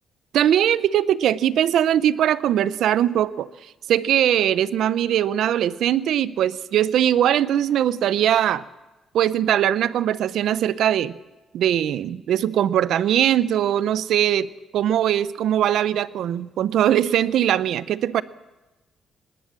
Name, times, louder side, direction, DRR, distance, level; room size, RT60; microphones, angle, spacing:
voice 1, 0.3-3.5 3.9-8.6 9.1-11.2 11.5-18.2, right 11 dB, 75° right, 17 dB, 0.7 m, -21 dB
19.5 x 18.0 x 7.5 m, 1.1 s
cardioid pair, 90°, 0 cm